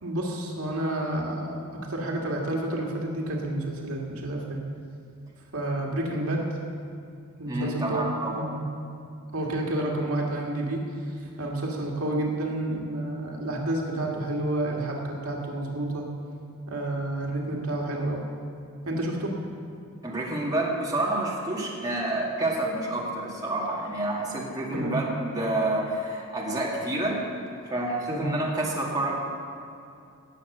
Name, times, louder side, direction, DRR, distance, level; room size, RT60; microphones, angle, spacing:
voice 1, 0.0-4.6 5.5-6.5 7.4-8.0 8.3-8.6 9.3-16.1 16.7-18.2 18.9-19.3 24.7-24.9 28.1-28.3, right 1 dB, 80° right, -1 dB, 2.0 m, -30 dB
voice 2, 7.5-8.4 20.0-27.2 27.6-29.2, right 1 dB, 15° right, -4 dB, 2.2 m, -28 dB
18.5 x 7.1 x 6.6 m, 2.6 s
head